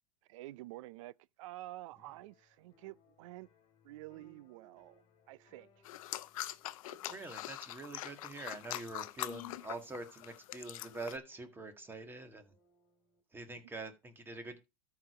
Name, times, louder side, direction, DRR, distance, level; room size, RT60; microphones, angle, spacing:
voice 1, 0.3-3.5 3.8-5.0 5.3-5.8 6.9-7.2, right 17 dB, 60° right, 0.5 m, -49 dB
sound 1, 2.0-13.2, left 1 dB, 30° left, 2.3 m, -70 dB
sound 2, 5.9-11.2, left 15 dB, 70° left, 0.7 m, -43 dB
voice 2, 7.1-12.6 13.3-14.6, right 2 dB, 10° right, 1.8 m, -45 dB
13.0 x 5.0 x 4.8 m
supercardioid pair, 135°, 18 cm